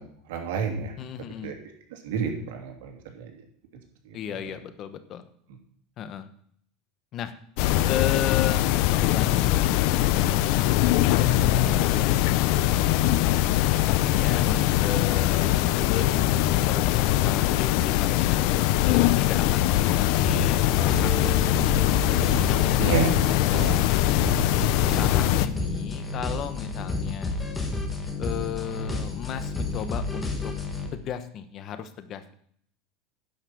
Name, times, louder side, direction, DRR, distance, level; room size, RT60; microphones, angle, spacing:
voice 1, 0.0-3.4 4.0-4.6 14.0-14.1 22.8-23.8 24.2-24.6, right 6 dB, 80° right, 2 dB, 2.8 m, -32 dB
voice 2, 1.0-1.5 4.1-5.3 6.0-6.3 7.1-7.3 7.9-10.4 11.0-13.0 13.7-16.1 16.6-21.5 22.5-23.0 23.2-23.4 24.6-27.4 28.2-30.5 30.9-32.3, left 9 dB, 40° left, 11 dB, 1.1 m, -35 dB
sound 1, 7.6-25.5, left 14 dB, 60° left, 0.6 m, -22 dB
sound 2, 15.4-28.5, right 3 dB, 20° right, 2.6 m, -43 dB
sound 3, 20.2-30.9, left 3 dB, 15° left, 1.8 m, -31 dB
10.5 x 5.8 x 7.8 m, 0.64 s
supercardioid pair, 140°, 0 cm